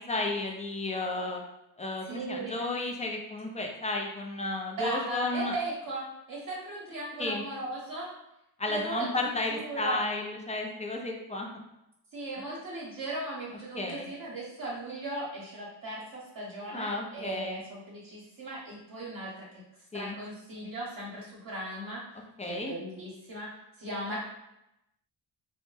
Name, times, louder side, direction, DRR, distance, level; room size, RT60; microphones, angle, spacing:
voice 1, 0.1-1.4 1.8-5.5 7.2-7.4 8.6-11.6 13.7-14.1 16.6-17.6 19.9-20.2 22.4-22.7, left 2 dB, 15° left, 0 dB, 0.3 m, -33 dB
voice 2, 2.0-2.5 4.8-8.1 8.7-10.0 12.1-19.6 19.9-22.0 22.4-23.5 23.8-24.2, right 2 dB, 50° right, -6 dB, 0.8 m, -37 dB
2.1 x 2.1 x 3.1 m, 0.86 s
cardioid pair, 75°, 44 cm